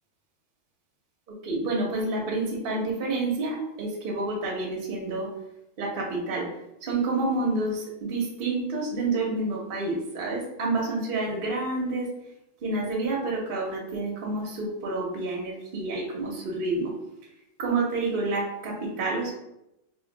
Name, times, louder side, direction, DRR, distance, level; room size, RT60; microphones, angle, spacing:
voice 1, 1.4-5.3 5.8-6.5 6.8-12.1 12.6-16.9 17.6-19.3, right 2 dB, 60° right, -2 dB, 0.5 m, -28 dB
3.7 x 2.1 x 4.0 m, 0.86 s
omnidirectional pair, 2.3 m